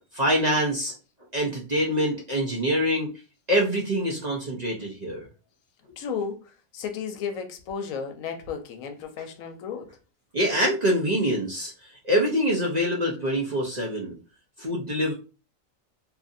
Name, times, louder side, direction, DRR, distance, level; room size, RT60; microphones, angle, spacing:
voice 1, 0.1-0.9 1.3-3.1 3.5-5.3 10.3-11.7 12.0-14.1 14.6-15.1, equal, 45° right, 0.6 m, -25 dB
voice 2, 6.0-9.9, left 6 dB, 90° left, 1.0 m, -34 dB
2.7 x 2.5 x 2.5 m
omnidirectional pair, 1.4 m